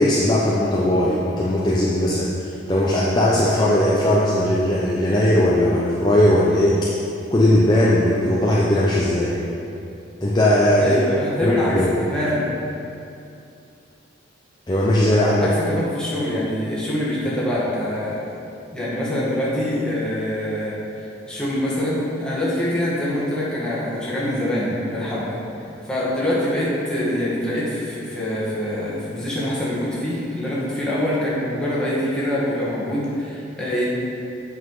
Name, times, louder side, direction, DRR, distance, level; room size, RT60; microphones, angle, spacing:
voice 1, 0.0-6.8 7.3-9.4 10.2-11.0 11.4-11.9 14.7-15.5, left 1 dB, 20° left, -6 dB, 0.7 m, -18 dB
voice 2, 10.8-12.5 15.4-18.2 18.7-20.8 21.3-25.4 25.8-33.9, left 1 dB, 5° left, -9 dB, 1.7 m, -24 dB
8.3 x 5.6 x 4.8 m, 2.7 s
head